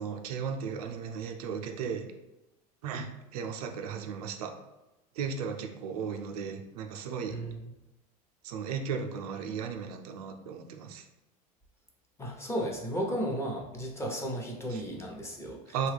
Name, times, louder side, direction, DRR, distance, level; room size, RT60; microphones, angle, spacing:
voice 1, 0.0-2.1 2.8-4.6 5.1-7.4 8.4-11.1 14.7-14.8 15.7-15.9, right 6 dB, 85° right, 5 dB, 0.4 m, -35 dB
voice 2, 7.3-7.7 12.2-15.9, equal, 15° left, -2 dB, 0.8 m, -34 dB
3.1 x 2.3 x 3.3 m, 0.99 s
supercardioid pair, 100°, 19 cm